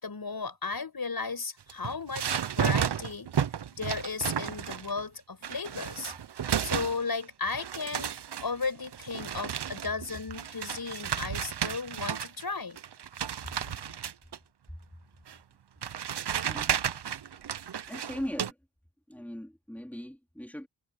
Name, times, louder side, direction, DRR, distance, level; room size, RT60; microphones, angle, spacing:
voice 1, 0.0-3.3 3.7-6.1 6.6-8.1 8.4-12.8, left 4 dB, 50° left, 6.4 m, -35 dB
sound 1, 1.6-5.0 5.4-7.2 7.5-12.4 12.8-14.4 15.3-15.4 15.8-18.5, right 8 dB, 60° right, 1.0 m, -33 dB
voice 2, 16.4-16.9 17.9-18.6 19.1-20.7, equal, 5° left, 4.1 m, -40 dB
cardioid pair, 55°, 46 cm